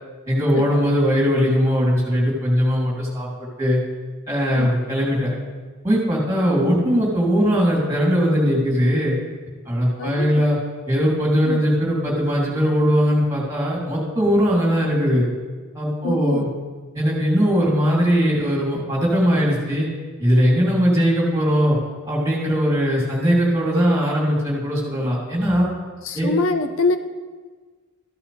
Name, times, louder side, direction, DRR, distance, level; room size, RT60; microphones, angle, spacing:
voice 1, 0.3-3.3 3.6-3.8 4.3-5.3 5.8-9.2 9.7-10.6 10.9-15.3 15.7-16.5 16.9-19.9 20.2-21.8 22.0-25.7 26.1-26.3, equal, 15° right, -4 dB, 3.2 m, -20 dB
voice 2, 10.0-10.5 11.4-11.6 16.0-16.5 26.0-27.0, left 3 dB, 75° left, 8 dB, 0.7 m, -24 dB
14.0 x 10.5 x 3.4 m, 1.4 s
head